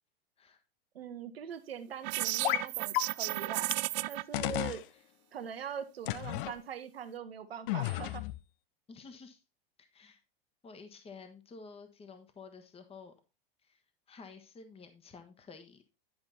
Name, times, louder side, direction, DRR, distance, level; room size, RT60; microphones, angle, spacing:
voice 1, 0.9-3.7 4.1-4.8 5.3-8.2, right 8 dB, 85° right, 8 dB, 1.0 m, -42 dB
sound 1, 2.0-4.2, right 22 dB, 45° right, 0.5 m, -33 dB
sound 2, 2.4-2.7 2.9-3.0 3.7-3.8 4.3-4.8 6.1-6.5 7.7-8.4, left 16 dB, 60° left, 0.6 m, -32 dB
voice 2, 8.9-9.4 9.8-10.2 10.6-13.1 13.6-13.8 14.1-15.8, left 4 dB, 20° left, 8 dB, 1.3 m, -51 dB
11.0 x 5.2 x 4.2 m, 0.28 s
hypercardioid pair, 100°, 29 cm